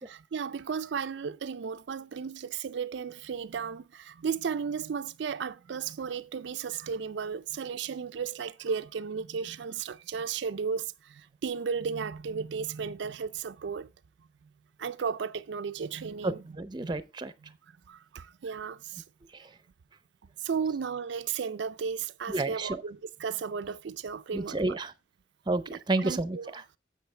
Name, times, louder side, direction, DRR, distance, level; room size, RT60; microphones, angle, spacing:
voice 1, 0.0-13.9 14.8-16.4 16.8-16.9 17.9-19.0 20.4-24.8 25.7-26.5, right 6 dB, 75° right, 0.4 m, -34 dB
voice 2, 16.2-17.3 19.3-19.5 22.3-22.8 24.3-24.9 25.5-26.8, right 2 dB, 25° right, 0.6 m, -31 dB
10.5 x 7.7 x 3.2 m
head